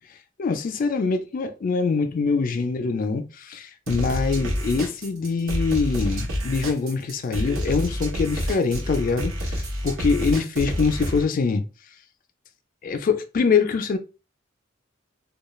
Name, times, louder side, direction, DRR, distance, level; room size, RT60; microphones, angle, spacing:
voice 1, 0.4-11.7 12.8-14.0, left 4 dB, 45° left, 0.3 m, -24 dB
sound 1, 3.9-11.2, equal, 85° right, 0.8 m, -28 dB
2.3 x 2.3 x 3.0 m
head